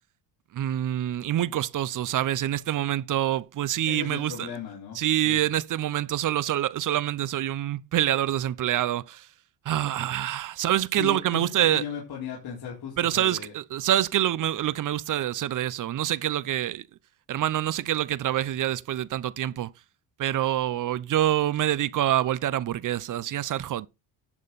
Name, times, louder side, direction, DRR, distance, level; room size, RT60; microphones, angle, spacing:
voice 1, 0.5-4.5 5.0-9.3 9.7-11.8 13.0-16.8 17.3-19.7 20.2-23.9, right 12 dB, 45° right, 0.6 m, -26 dB
voice 2, 3.9-5.4 10.9-13.5, left 7 dB, 55° left, 3.9 m, -37 dB
11.0 x 7.2 x 4.0 m
cardioid pair, 115°, 43 cm